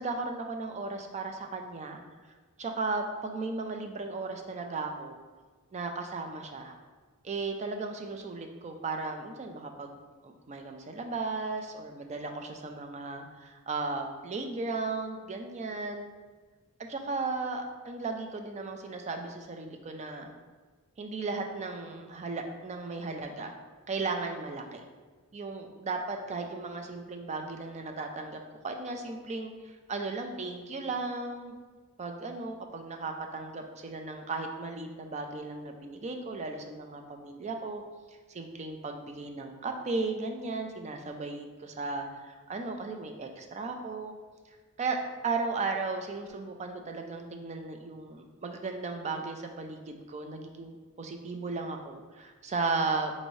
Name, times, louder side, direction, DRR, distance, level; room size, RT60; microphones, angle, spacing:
voice 1, 0.0-2.0 2.6-5.2 5.7-6.8 7.2-10.0 10.2-16.1 16.9-20.3 21.0-23.5 23.9-24.8 25.3-31.5 32.0-37.8 38.3-44.2 44.8-53.1, right 3 dB, 30° right, 4 dB, 0.4 m, -35 dB
5.1 x 2.7 x 3.1 m, 1.4 s
head